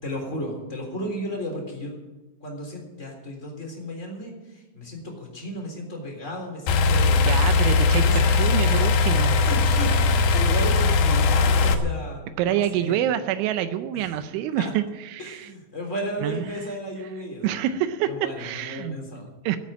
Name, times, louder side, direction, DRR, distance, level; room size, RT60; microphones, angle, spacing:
voice 1, 0.0-2.0 2.4-8.3 9.1-9.2 9.5-13.0 13.9-14.1 14.6-14.7 15.2-17.6 18.1-19.3, equal, 15° left, 1 dB, 3.3 m, -34 dB
sound 1, 6.7-11.7, left 4 dB, 85° left, 1.8 m, -19 dB
voice 2, 7.2-9.4 12.4-15.5 16.2-16.7 17.4-19.0 19.4-19.6, right 11 dB, 85° right, 10 dB, 3.1 m, -27 dB
17.0 x 8.6 x 9.0 m, 1.1 s
omnidirectional pair, 5.4 m